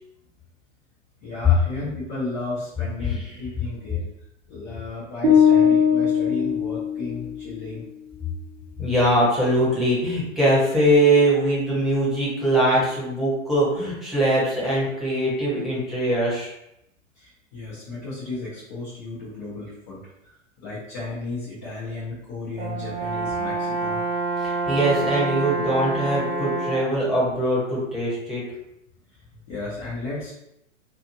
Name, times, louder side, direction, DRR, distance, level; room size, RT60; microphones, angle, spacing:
voice 1, 1.2-4.0 4.5-7.8 17.2-20.3 20.6-24.0 29.1-30.3, left 3 dB, 15° left, -10 dB, 0.3 m, -34 dB
sound 1, 5.2-7.4, left 7 dB, 60° right, 1.1 m, -19 dB
voice 2, 8.8-16.5 24.4-28.4, right 1 dB, ahead, -9 dB, 0.8 m, -22 dB
Brass instrument, 22.6-27.0, right 3 dB, 35° right, 1.1 m, -27 dB
2.9 x 2.3 x 2.5 m, 0.82 s
figure-of-eight pair, 115°, 40 cm